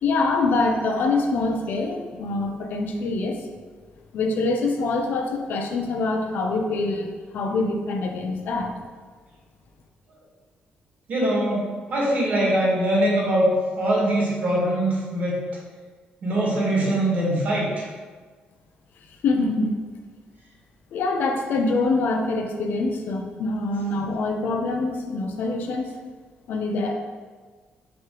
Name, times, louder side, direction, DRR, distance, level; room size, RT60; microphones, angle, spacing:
voice 1, 0.0-3.4 4.1-8.7 19.2-19.8 20.9-25.9 26.5-26.9, left 3 dB, 65° left, 3 dB, 0.8 m, -25 dB
voice 2, 11.1-13.5 13.8-15.4 16.2-17.9, right 1 dB, 50° right, -3 dB, 1.8 m, -22 dB
5.3 x 4.9 x 4.7 m, 1.5 s
cardioid pair, 155°, 4 cm